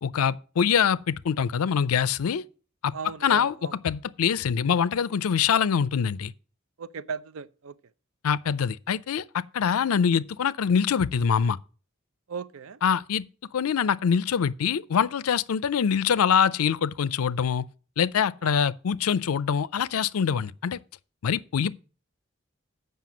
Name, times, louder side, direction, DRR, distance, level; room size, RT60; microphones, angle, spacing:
voice 1, 0.0-2.4 2.8-2.9 3.2-3.5 3.8-6.3 8.2-11.6 12.8-13.2 13.5-17.6 18.0-20.8 21.2-21.8, left 7 dB, 90° left, 0.4 m, -24 dB
voice 2, 2.9-3.8 6.8-7.8 12.3-12.8 18.4-18.6, right 5 dB, 75° right, 0.5 m, -37 dB
7.6 x 5.7 x 7.1 m
head